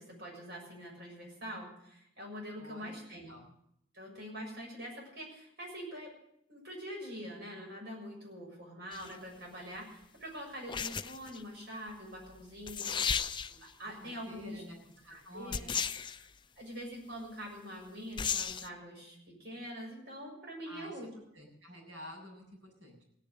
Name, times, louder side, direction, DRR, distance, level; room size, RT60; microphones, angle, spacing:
voice 1, 0.0-3.4 3.9-6.1 6.5-12.9 13.5-14.6 15.1-15.7 16.2-16.3 16.6-21.1, equal, 60° right, -1 dB, 6.8 m, -44 dB
voice 2, 2.6-3.4 13.8-14.8 15.0-15.8 20.7-21.0 21.3-23.0, equal, 75° right, -1 dB, 7.7 m, -50 dB
sound 1, 8.9-9.1 10.7-11.4 12.4-12.5 12.7-13.7 15.5-16.2 18.2-18.7, left 7 dB, 25° left, 0.5 m, -34 dB
17.0 x 10.0 x 8.0 m, 0.76 s
head